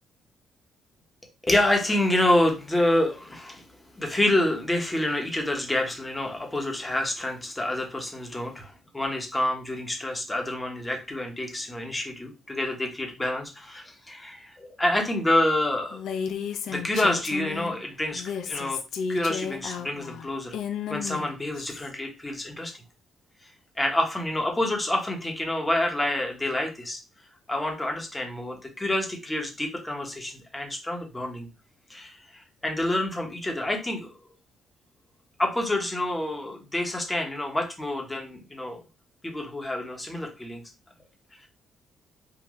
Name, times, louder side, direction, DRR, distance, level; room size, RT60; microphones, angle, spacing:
voice 1, 1.4-3.7 3.9-16.0 16.7-18.8 19.1-20.6 20.9-22.7 23.4-23.5 23.8-27.0 27.5-31.5 31.9-34.1 35.4-38.8 39.2-40.6, left 1 dB, 15° left, 2 dB, 1.1 m, -27 dB
Female speech woman speaking, 15.9-17.8 18.1-21.9, left 7 dB, 75° left, 0.5 m, -33 dB
3.8 x 2.4 x 3.1 m, 0.29 s
cardioid pair, 90°, 0 cm